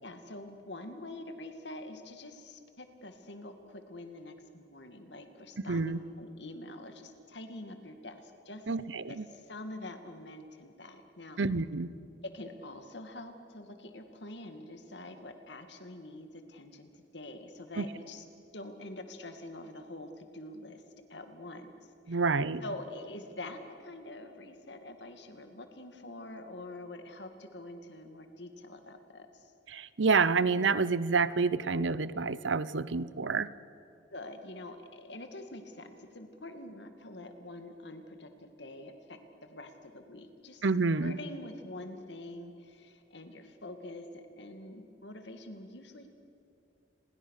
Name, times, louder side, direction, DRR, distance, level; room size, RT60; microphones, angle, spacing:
voice 1, 0.0-8.7 9.1-11.4 12.2-18.2 18.5-20.8 21.1-21.7 22.1-22.2 22.6-29.5 34.1-40.6 41.0-46.1, left 1 dB, 70° left, 7 dB, 2.3 m, -45 dB
voice 2, 5.7-6.0 8.7-9.3 11.4-11.9 17.8-17.9 22.1-22.6 29.7-33.5 40.6-41.2, right 4 dB, 90° right, 17 dB, 0.8 m, -28 dB
29.5 x 21.5 x 6.6 m, 2.6 s
head